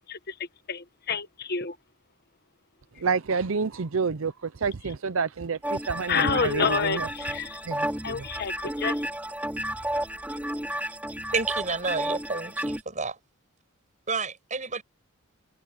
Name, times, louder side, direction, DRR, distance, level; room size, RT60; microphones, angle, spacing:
voice 1, 0.7-1.8 6.1-7.6 8.0-9.0, left 6 dB, 50° left, 1.2 m, -28 dB
voice 2, 3.0-7.1 7.7-8.4, right 5 dB, 70° right, 0.6 m, -29 dB
sound 1, 5.6-12.8, equal, 5° right, 2.6 m, -32 dB
voice 3, 11.3-13.2 14.1-14.8, right 4 dB, 35° right, 7.8 m, -30 dB
head